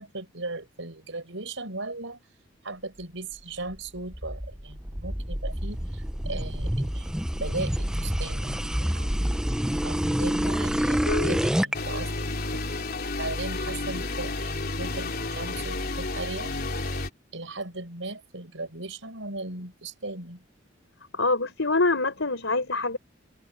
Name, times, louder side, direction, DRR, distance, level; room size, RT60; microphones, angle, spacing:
voice 1, 0.0-2.2 2.6-9.3 9.8-12.1 13.2-16.6 17.3-20.4, right 2 dB, 70° right, 7.7 m, -37 dB
sound 1, 3.7-11.7, equal, 5° right, 0.6 m, -27 dB
voice 2, 11.0-11.4 21.1-23.0, left 3 dB, 70° left, 4.7 m, -25 dB
sound 2, 11.7-17.1, left 2 dB, 50° left, 3.6 m, -31 dB
head